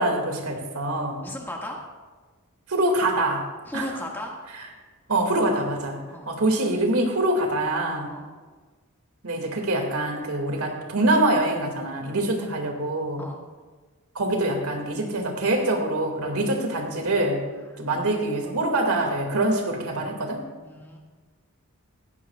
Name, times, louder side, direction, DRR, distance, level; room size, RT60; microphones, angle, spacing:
voice 1, 0.0-1.3 2.7-3.4 3.7-3.9 5.1-8.1 9.2-13.2 14.2-17.4 17.8-20.5, right 1 dB, 80° right, 2 dB, 2.2 m, -25 dB
voice 2, 1.2-1.8 3.7-4.3 6.1-6.3 8.1-8.2 12.4-12.5 13.2-13.4 17.6-18.0 20.6-21.0, left 1 dB, 10° left, -1 dB, 1.8 m, -36 dB
16.5 x 16.0 x 2.4 m, 1.4 s
head